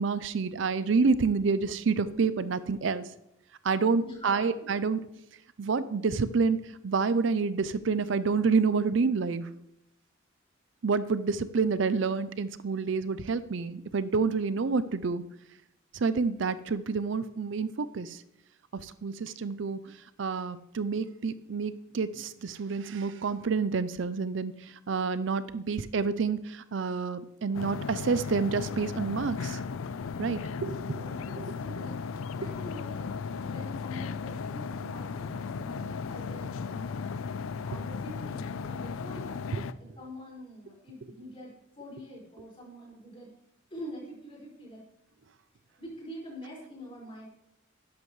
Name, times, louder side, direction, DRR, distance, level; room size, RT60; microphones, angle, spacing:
voice 1, 0.0-3.1 3.6-5.0 5.6-9.5 10.8-15.2 15.9-18.2 18.7-19.9 20.2-29.6 30.2-31.0 31.4-31.5, right 4 dB, 65° right, 14 dB, 0.5 m, -28 dB
voice 2, 4.0-4.5 30.9-37.3 37.6-43.3 43.7-44.8 45.8-47.3, equal, 30° left, -3 dB, 5.0 m, -45 dB
sound 1, 27.5-39.7, left 5 dB, 85° left, 0.4 m, -36 dB
12.5 x 10.5 x 3.2 m, 0.82 s
head